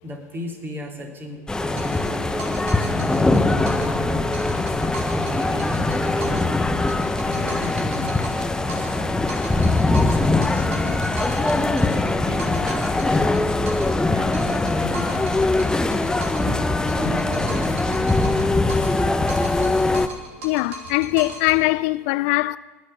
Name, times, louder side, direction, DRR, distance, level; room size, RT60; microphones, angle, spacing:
voice 1, 0.0-3.3 3.8-4.8 5.0-6.8 7.2-9.4 10.0-13.5 14.1-15.3 16.4-16.6 16.9-18.6, equal, 30° right, 3.4 m, -35 dB
sound 1, 1.5-20.1, left 2 dB, 10° left, 0.9 m, -22 dB
sound 2, 1.8-4.0 4.3-6.5 6.9-9.0 9.3-14.0 14.3-16.5 16.9-19.0 19.3-21.6, right 2 dB, 75° right, 2.7 m, -38 dB
voice 2, 20.4-22.6, left 21 dB, 65° left, 0.3 m, -21 dB
19.5 x 6.6 x 8.6 m
hypercardioid pair, 75°, 7 cm